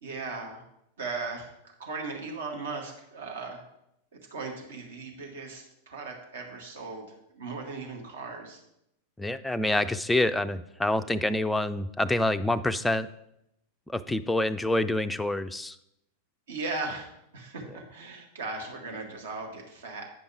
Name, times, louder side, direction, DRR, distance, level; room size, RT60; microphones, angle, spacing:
voice 1, 0.0-0.6 1.0-3.6 4.3-7.1 7.3-8.6 9.7-9.9 16.5-17.1 17.3-20.1, right 3 dB, 65° right, 1 dB, 1.7 m, -37 dB
voice 2, 9.2-13.1 13.9-15.8, left 1 dB, 5° left, 10 dB, 0.4 m, -27 dB
9.3 x 5.3 x 4.8 m, 0.80 s
figure-of-eight pair, 90°, 0 cm